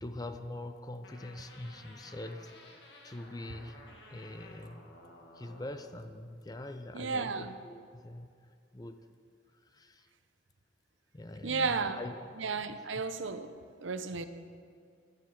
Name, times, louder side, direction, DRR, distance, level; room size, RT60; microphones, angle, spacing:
voice 1, 0.0-2.5 3.0-3.8 4.1-4.8 5.3-8.3 8.7-9.0 9.6-10.1 11.1-12.2 12.5-12.7, left 1 dB, 20° left, 8 dB, 0.6 m, -43 dB
sound 1, 1.0-6.0, left 2 dB, 60° left, 1.9 m, -54 dB
voice 2, 6.9-7.6 11.4-12.0 12.4-13.5 13.8-14.3, right 4 dB, 80° right, 10 dB, 0.8 m, -33 dB
10.5 x 10.5 x 7.7 m, 2.2 s
head